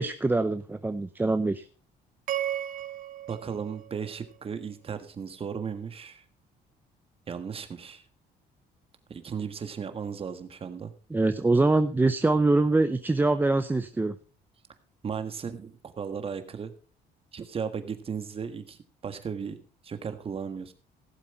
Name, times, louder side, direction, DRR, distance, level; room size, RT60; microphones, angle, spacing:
voice 1, 0.0-1.7 11.1-14.1, right 2 dB, 10° right, 10 dB, 0.6 m, -24 dB
sound 1, 2.3-4.6, right 11 dB, 55° right, 1.0 m, -35 dB
voice 2, 3.3-6.2 7.3-8.0 9.1-10.9 15.0-16.7 17.3-18.8 19.0-20.7, right 6 dB, 35° right, 9 dB, 1.6 m, -35 dB
16.5 x 7.6 x 4.3 m, 0.39 s
cardioid pair, 110°, 17 cm